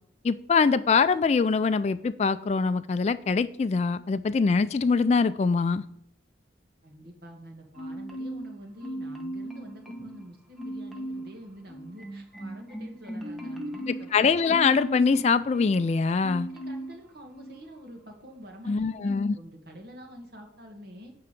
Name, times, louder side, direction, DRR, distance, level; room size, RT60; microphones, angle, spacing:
voice 1, 0.2-5.8 14.1-16.5 18.7-19.4, left 5 dB, 35° left, 0.3 m, -23 dB
voice 2, 6.8-14.3 16.5-21.2, equal, 55° right, 1.9 m, -46 dB
Marimba xylophone, 7.8-8.5 8.8-10.2 10.6-11.3 11.7-15.9 16.2-16.9 17.3-17.5, right 1 dB, ahead, 0.9 m, -37 dB
9.2 x 3.9 x 6.7 m
head